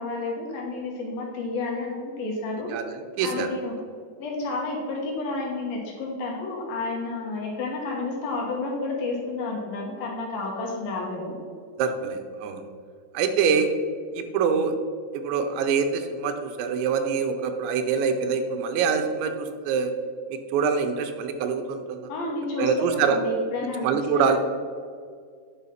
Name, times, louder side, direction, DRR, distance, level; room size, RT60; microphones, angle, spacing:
voice 1, 0.0-2.7 3.2-3.8 4.2-11.4 22.1-24.4, left 3 dB, 70° left, -1 dB, 2.6 m, -31 dB
voice 2, 2.7-3.5 11.8-12.6 13.1-13.7 14.1-14.7 15.1-19.9 20.3-22.1 22.6-23.2 23.8-24.4, right 6 dB, 90° right, 7 dB, 3.1 m, -25 dB
9.6 x 5.6 x 5.7 m, 2.1 s
omnidirectional pair, 5.1 m